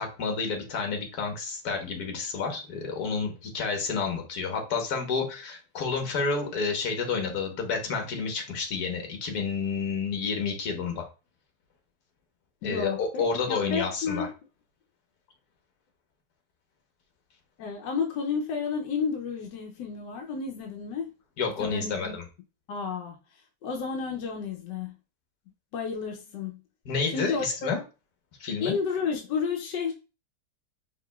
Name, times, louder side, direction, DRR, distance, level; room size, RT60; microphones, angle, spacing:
voice 1, 0.0-11.1 12.6-14.3 21.4-22.2 26.8-27.8 28.4-28.7, left 5 dB, 70° left, 1.6 m, -30 dB
voice 2, 12.6-14.3 17.6-21.1 21.6-22.1 22.7-24.9 25.7-26.6 27.1-27.7 28.6-29.9, left 5 dB, 90° left, 1.3 m, -31 dB
4.9 x 3.7 x 2.3 m
omnidirectional pair, 1.8 m